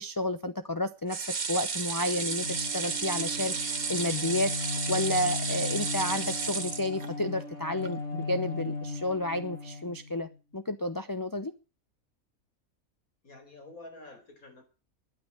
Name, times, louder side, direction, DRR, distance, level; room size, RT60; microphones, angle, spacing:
voice 1, 0.0-4.5 4.9-11.5, left 1 dB, 20° left, 9 dB, 0.6 m, -31 dB
sound 1, 1.1-7.4 7.8-7.9 8.2-8.3, right 5 dB, 85° right, 2.2 m, -33 dB
Bowed string instrument, 1.9-10.4, left 3 dB, 50° left, 4.7 m, -37 dB
voice 2, 13.2-14.6, left 2 dB, 80° left, 5 dB, 5.0 m, -48 dB
12.0 x 9.6 x 9.8 m, 0.34 s
omnidirectional pair, 1.5 m